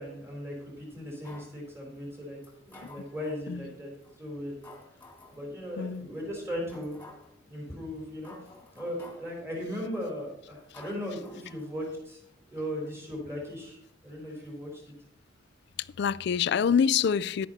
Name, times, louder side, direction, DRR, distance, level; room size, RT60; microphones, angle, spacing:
voice 1, 0.0-2.4 2.7-3.9 4.2-4.6 5.3-7.0 7.5-8.3 8.7-12.2 12.5-14.8, equal, 15° right, 3.6 m, -37 dB
sound 1, 1.2-1.6 2.4-3.4 4.0-4.1 4.6-5.4 5.9-6.0 6.7-7.4 8.0-9.4 9.9-10.2 10.7-12.0 12.3-12.4, left 2 dB, 10° left, 2.0 m, -51 dB
voice 2, 5.8-6.1 16.0-17.5, left 7 dB, 60° left, 0.3 m, -26 dB
10.5 x 9.6 x 4.2 m
head